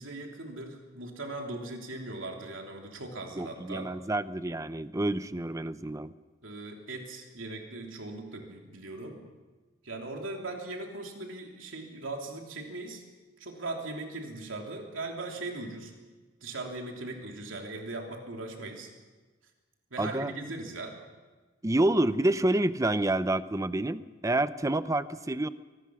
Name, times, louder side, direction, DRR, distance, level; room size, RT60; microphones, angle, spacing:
voice 1, 0.0-3.9 6.4-9.2 9.8-13.0 13.4-15.9 16.4-18.9 19.9-21.0, right 2 dB, 80° right, 1 dB, 3.1 m, -39 dB
voice 2, 3.4-6.1 20.0-20.3 21.6-25.5, right 1 dB, 15° right, 13 dB, 0.7 m, -28 dB
24.0 x 19.0 x 6.3 m, 1.3 s
head